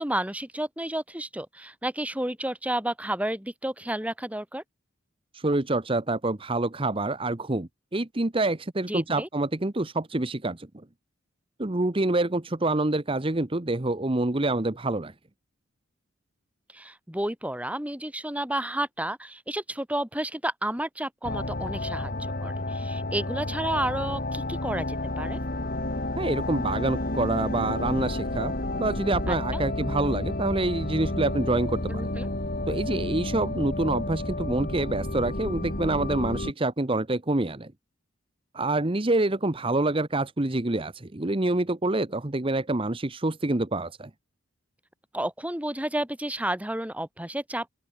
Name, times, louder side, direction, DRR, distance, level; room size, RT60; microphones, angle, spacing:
voice 1, 0.0-4.6 8.9-9.3 16.7-25.4 29.3-29.6 31.9-32.3 45.1-47.7, right 1 dB, 5° right, 2.5 m, -31 dB
voice 2, 5.3-10.8 11.6-15.1 26.2-28.5 28.8-32.1 32.7-37.7 38.5-44.1, right 2 dB, 25° right, 1.0 m, -27 dB
sound 1, 21.2-36.5, left 1 dB, 45° left, 2.7 m, -31 dB
open air
head